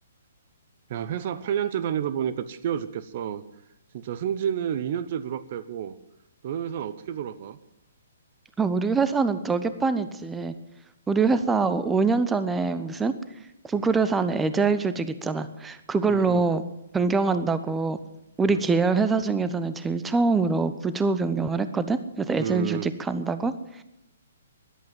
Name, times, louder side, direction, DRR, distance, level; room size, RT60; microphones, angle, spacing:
voice 1, 0.9-3.4 3.9-6.0 6.4-7.6 13.7-13.9 16.1-16.4 18.4-18.6 22.4-22.9, right 9 dB, 45° right, 13 dB, 0.7 m, -30 dB
voice 2, 8.6-10.5 11.1-13.1 13.6-16.6 16.9-18.0 18.4-23.8, right 4 dB, 10° right, 12 dB, 0.8 m, -24 dB
13.5 x 11.5 x 7.5 m, 0.88 s
figure-of-eight pair, 125°, 0 cm